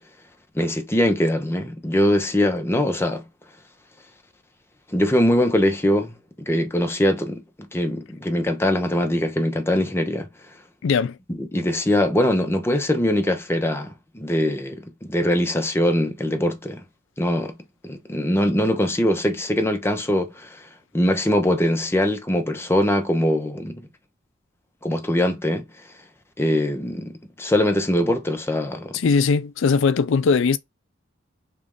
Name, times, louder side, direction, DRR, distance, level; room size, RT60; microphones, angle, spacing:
voice 1, 0.5-3.2 4.9-10.3 11.3-16.8 17.2-17.5 17.8-20.6 20.9-23.9 24.8-25.6 26.4-29.0, left 1 dB, 10° left, 0.6 m, -22 dB
voice 2, 10.8-11.2 28.9-30.6, left 5 dB, 65° left, 0.4 m, -19 dB
3.1 x 2.6 x 3.6 m
head